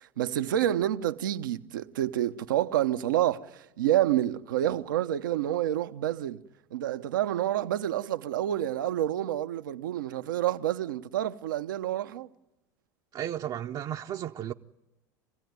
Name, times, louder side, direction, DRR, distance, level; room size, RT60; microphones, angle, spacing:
voice 1, 0.0-6.4 6.7-12.3, right 12 dB, 85° right, 0.9 m, -28 dB
voice 2, 13.1-14.5, right 11 dB, 45° right, 0.8 m, -34 dB
26.5 x 16.0 x 9.5 m
hypercardioid pair, 90°, 11 cm